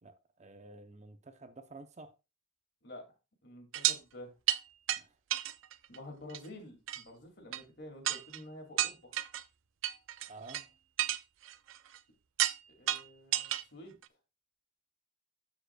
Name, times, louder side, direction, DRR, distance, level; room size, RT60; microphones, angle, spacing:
voice 1, 0.0-2.1 4.9-5.2 10.3-10.7, right 3 dB, 35° right, 0.7 m, -51 dB
voice 2, 3.4-4.3 5.9-9.1 12.7-14.0, left 1 dB, 60° left, 2.4 m, -49 dB
sound 1, 3.7-4.0 4.5-4.6 4.9-5.0 5.3-6.0 6.3-6.5 6.9-7.0 7.5-7.6 8.0-8.4 8.8-9.4 9.8-10.6 11.0-12.0 12.4-12.6 12.9-13.6 14.0-14.1, right 13 dB, 75° right, 0.5 m, -32 dB
13.0 x 5.1 x 2.3 m
head